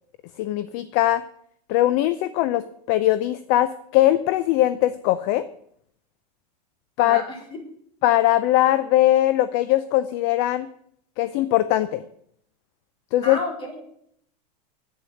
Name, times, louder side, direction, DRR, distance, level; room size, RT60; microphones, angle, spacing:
voice 1, 0.4-1.2 1.7-5.4 7.0-7.2 8.0-10.7 11.2-12.0 13.1-13.4, left 14 dB, 50° left, 14 dB, 0.7 m, -20 dB
voice 2, 7.0-7.6 13.2-13.8, left 2 dB, 25° left, 0 dB, 4.5 m, -32 dB
11.0 x 8.9 x 7.7 m, 0.69 s
supercardioid pair, 135°, 20 cm